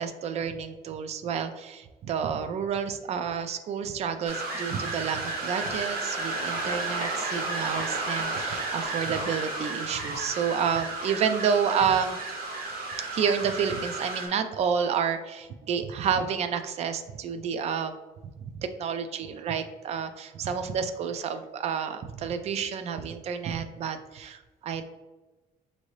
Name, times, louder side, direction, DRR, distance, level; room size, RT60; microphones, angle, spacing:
voice 1, 0.0-12.2 13.0-17.9 18.5-24.8, right 7 dB, 45° right, 9 dB, 0.4 m, -30 dB
sound 1, 4.3-14.3, right 2 dB, 75° right, 1.2 m, -32 dB
5.4 x 2.6 x 3.1 m, 1.2 s
cardioid pair, 155°, 15 cm